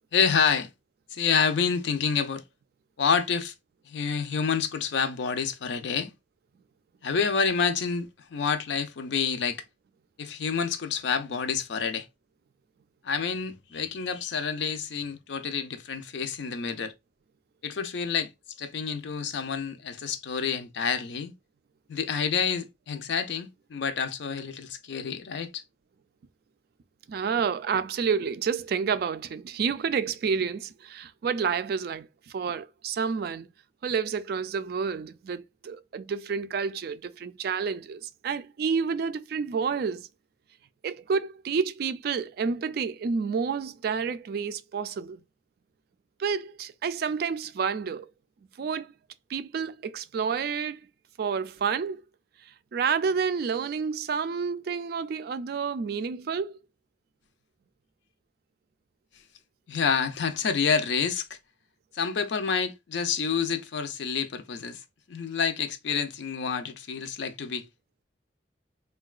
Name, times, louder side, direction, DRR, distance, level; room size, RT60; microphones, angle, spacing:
voice 1, 0.1-0.7 1.1-2.4 3.0-3.5 3.9-6.1 7.0-9.6 10.2-12.1 13.0-16.9 17.6-18.3 18.6-21.3 21.9-25.6 59.7-61.3 61.9-64.8 65.1-67.7, left 6 dB, 75° left, 0.5 m, -28 dB
voice 2, 27.1-33.5 33.8-40.1 40.8-45.2 46.2-48.1 48.6-48.9 49.3-50.8 51.2-52.0 52.7-56.6, right 6 dB, 60° right, 0.3 m, -29 dB
3.7 x 2.2 x 2.3 m
head